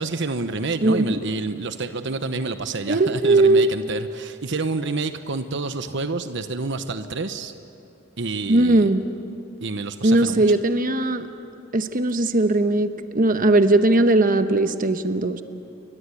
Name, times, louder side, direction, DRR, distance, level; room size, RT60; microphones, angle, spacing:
voice 1, 0.0-7.5 8.2-8.9 9.6-10.4, right 3 dB, 65° right, 9 dB, 1.0 m, -28 dB
voice 2, 0.8-1.2 2.9-3.7 8.5-9.0 10.0-11.3 11.7-15.4, right 2 dB, 45° right, 8 dB, 1.1 m, -19 dB
30.0 x 23.5 x 8.4 m, 2.6 s
head